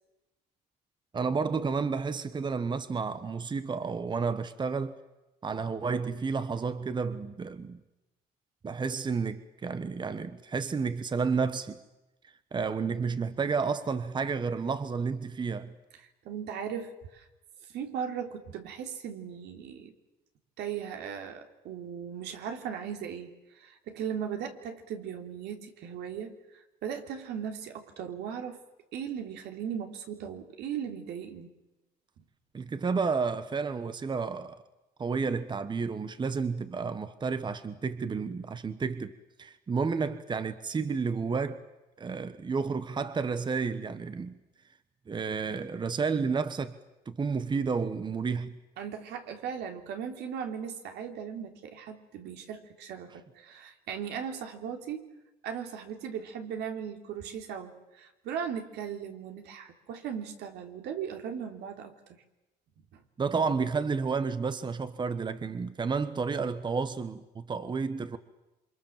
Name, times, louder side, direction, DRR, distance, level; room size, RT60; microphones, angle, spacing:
voice 1, 1.1-4.9 5.4-7.8 8.6-11.8 12.5-15.7 32.5-34.6 35.0-41.6 42.0-44.4 45.1-46.7 47.1-48.5 63.2-68.2, right 5 dB, 25° right, 1.2 m, -31 dB
voice 2, 16.0-17.3 17.6-19.9 20.6-28.6 28.9-31.5 32.2-32.3 48.8-55.1 55.4-62.2 62.9-63.0, right 8 dB, 80° right, 3.3 m, -38 dB
28.0 x 25.0 x 7.5 m
cardioid pair, 110°, 17 cm